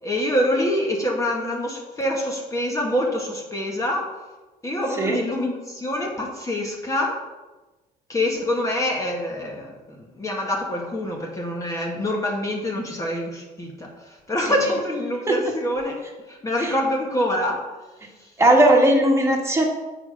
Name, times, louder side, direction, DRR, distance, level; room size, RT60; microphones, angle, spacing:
voice 1, 0.0-4.1 4.6-7.2 8.1-16.0 16.3-17.7, left 1 dB, 20° left, -1 dB, 1.5 m, -25 dB
voice 2, 18.4-19.7, right 1 dB, 15° right, 1 dB, 1.6 m, -17 dB
8.2 x 5.0 x 5.2 m, 1.2 s
cardioid pair, 110°, 17 cm